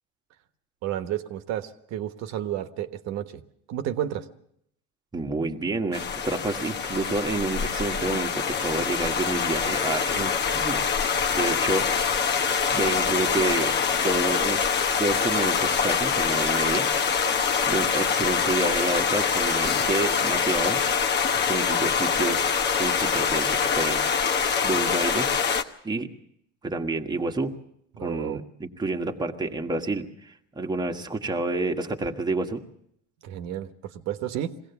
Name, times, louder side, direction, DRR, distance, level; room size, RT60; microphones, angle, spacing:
voice 1, 0.8-3.4 3.7-4.3 28.0-28.4 33.2-34.6, right 11 dB, 50° right, 9 dB, 1.3 m, -31 dB
voice 2, 5.1-10.8 11.3-12.2 12.7-16.9 17.7-20.8 21.3-24.3 24.6-25.3 25.8-26.1 26.6-27.5 28.0-32.6, right 2 dB, 10° right, 4 dB, 1.5 m, -29 dB
sound 1, 5.9-25.6, left 6 dB, 30° left, 1.2 m, -24 dB
22.0 x 17.0 x 7.0 m, 0.72 s
supercardioid pair, 125°, 34 cm